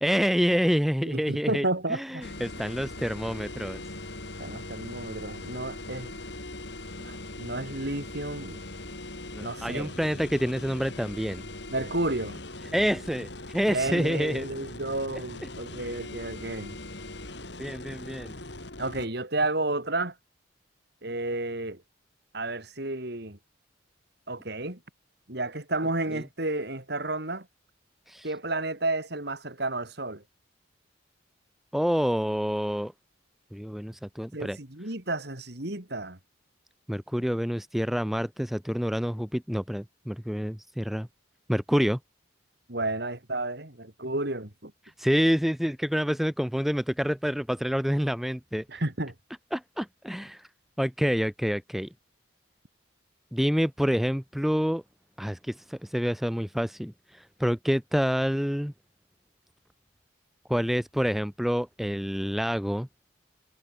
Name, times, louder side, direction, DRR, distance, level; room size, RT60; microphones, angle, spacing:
voice 1, 0.0-3.8 9.3-11.4 12.7-13.3 13.5-14.5 17.6-18.3 28.1-28.3 31.7-32.9 33.5-34.6 36.9-41.1 41.5-42.0 45.0-48.6 49.5-50.5 50.8-51.9 53.3-54.8 55.2-58.7 60.5-62.9, equal, ahead, 0.4 m, -27 dB
voice 2, 1.0-2.2 4.4-6.2 7.0-8.6 9.4-9.9 11.7-12.4 13.7-16.8 18.8-20.1 21.0-21.8 22.3-23.4 24.3-24.8 25.3-27.5 28.2-30.2 34.3-36.2 42.7-44.7 48.7-49.1, right 2 dB, 55° right, 3.1 m, -31 dB
sound 1, 2.2-19.1, left 2 dB, 60° left, 3.8 m, -40 dB
head